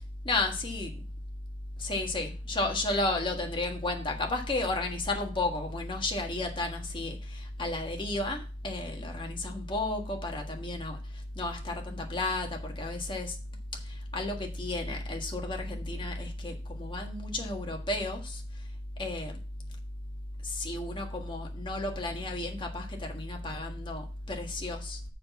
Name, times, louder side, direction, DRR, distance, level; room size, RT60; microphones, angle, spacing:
voice 1, 0.2-1.0 1.8-11.0 11.3-13.4 13.9-18.4 19.0-19.4 20.4-25.0, left 2 dB, 30° left, 2 dB, 1.6 m, -33 dB
6.8 x 5.9 x 5.9 m, 0.36 s
head